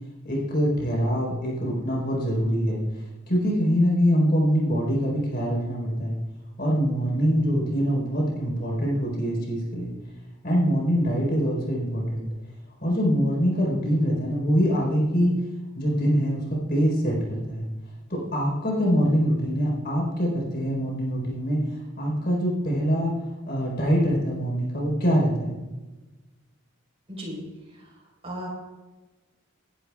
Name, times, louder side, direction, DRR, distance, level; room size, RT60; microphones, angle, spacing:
voice 1, 0.2-2.8 3.3-6.1 6.6-9.9 10.4-12.3 12.8-15.3 15.7-17.6 18.1-21.6 22.0-23.2 23.5-25.5, equal, 50° left, -2 dB, 4.5 m, -24 dB
voice 2, 27.1-28.5, equal, 30° right, -3 dB, 4.7 m, -38 dB
19.5 x 11.5 x 2.5 m, 1.1 s
head